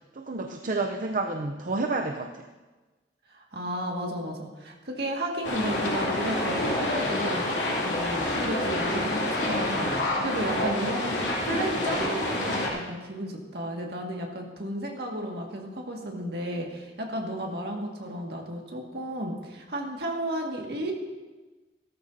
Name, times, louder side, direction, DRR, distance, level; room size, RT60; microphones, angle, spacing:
voice 1, 0.1-2.4, right 3 dB, 50° right, 4 dB, 0.6 m, -30 dB
voice 2, 3.3-11.2 11.4-20.9, right 1 dB, 65° right, 0 dB, 1.9 m, -33 dB
sound 1, 5.4-12.7, left 1 dB, 85° left, 3.1 m, -28 dB
16.5 x 13.5 x 2.7 m, 1.3 s
head